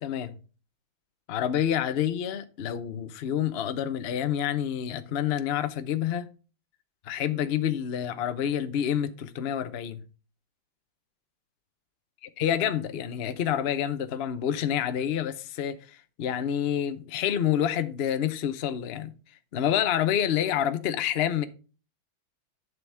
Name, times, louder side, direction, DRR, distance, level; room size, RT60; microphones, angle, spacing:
voice 1, 1.3-6.3 7.0-10.0 12.4-19.1 19.5-21.4, left 10 dB, 55° left, 0.7 m, -28 dB
11.0 x 6.9 x 3.5 m
omnidirectional pair, 2.1 m